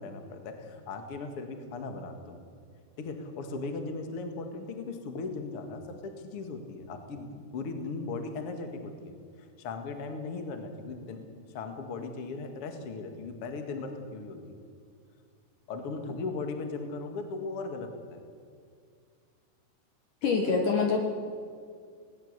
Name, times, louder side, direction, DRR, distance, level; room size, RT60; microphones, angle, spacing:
voice 1, 0.0-2.4 3.0-9.1 9.6-14.6 15.7-18.2, left 3 dB, 45° left, 5 dB, 2.1 m, -38 dB
voice 2, 20.2-21.0, left 4 dB, 60° left, 3 dB, 2.5 m, -25 dB
19.0 x 18.0 x 8.1 m, 2.1 s
omnidirectional pair, 4.8 m